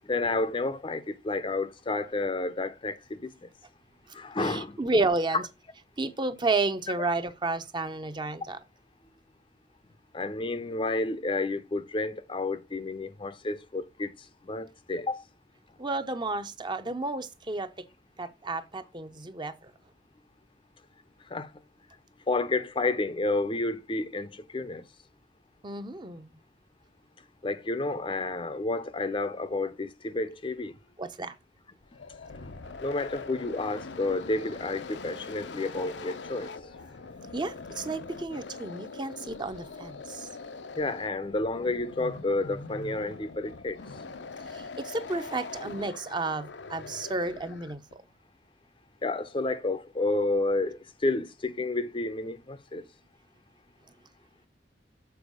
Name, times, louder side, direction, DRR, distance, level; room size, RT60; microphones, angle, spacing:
voice 1, 0.0-3.5 4.1-4.8 10.1-14.1 14.4-15.2 21.3-21.5 22.3-24.8 27.4-30.8 32.8-36.9 40.8-43.9 49.0-52.8, left 2 dB, 30° left, 0.6 m, -30 dB
voice 2, 4.4-5.4 6.0-8.6 15.8-17.7 18.2-19.5 25.6-26.3 31.0-31.3 37.3-40.3 44.8-47.8, right 3 dB, 25° right, 0.7 m, -31 dB
sound 1, 31.8-47.9, left 4 dB, 90° left, 0.8 m, -43 dB
7.0 x 4.5 x 6.3 m
head